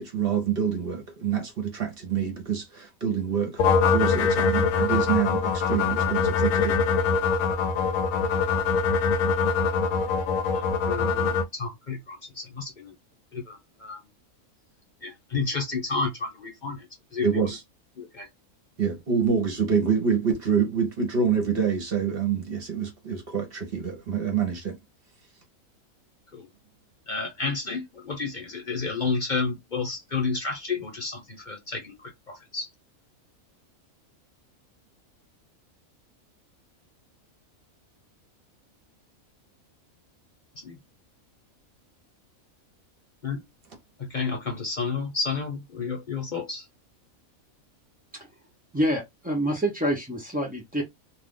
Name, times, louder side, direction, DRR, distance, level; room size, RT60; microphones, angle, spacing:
voice 1, 0.0-3.6 3.9-6.8 17.2-17.6 18.8-24.8, right 6 dB, 50° right, 0.9 m, -26 dB
sound 1, 3.6-11.4, left 5 dB, 75° left, 1.0 m, -23 dB
voice 2, 10.5-12.9 13.3-14.0 15.0-16.9 17.1-17.5 18.0-18.3 26.3-26.5 27.1-32.7 40.5-40.8 43.2-43.4 44.0-46.7, left 4 dB, 40° left, 0.9 m, -31 dB
voice 3, 48.7-50.8, equal, 15° right, 0.3 m, -27 dB
2.4 x 2.4 x 3.6 m
omnidirectional pair, 1.4 m